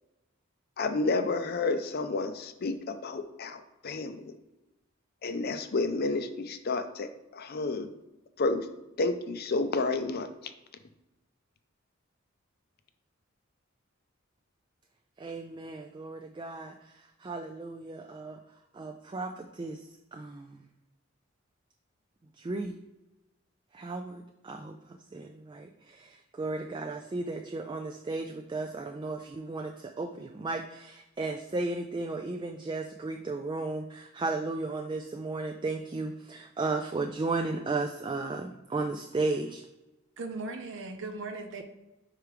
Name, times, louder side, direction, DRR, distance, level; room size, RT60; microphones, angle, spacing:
voice 1, 0.8-4.3 5.2-7.9 8.4-8.7 9.0-10.3, left 3 dB, 50° left, 9 dB, 0.5 m, -30 dB
voice 2, 15.2-16.7 17.2-18.4 18.7-19.8 20.1-20.6 22.4-22.8 23.7-24.8 25.1-39.6, right 3 dB, 25° right, 4 dB, 0.3 m, -34 dB
voice 3, 40.2-41.6, right 3 dB, 60° right, 5 dB, 0.8 m, -38 dB
4.9 x 4.6 x 4.9 m, 0.98 s
head